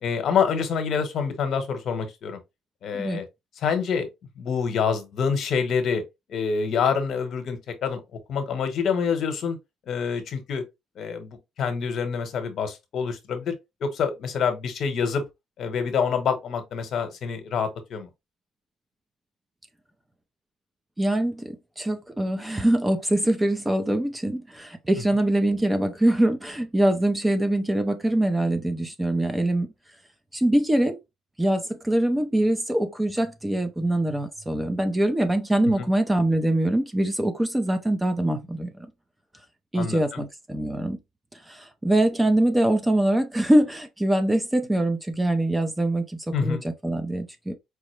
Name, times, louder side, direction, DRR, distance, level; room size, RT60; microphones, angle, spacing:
voice 1, 0.0-2.4 2.8-3.2 3.6-4.1 4.4-6.0 6.3-8.0 8.3-9.6 9.9-10.6 11.0-13.5 13.8-15.2 15.6-18.1 35.8-35.9 39.7-40.2 46.3-46.6, left 6 dB, 55° left, 1.0 m, -26 dB
voice 2, 21.0-29.7 30.3-31.0 31.4-38.9 39.7-41.0 41.3-47.5, right 1 dB, 10° right, 0.5 m, -23 dB
4.8 x 2.1 x 3.1 m
cardioid pair, 135°, 0 cm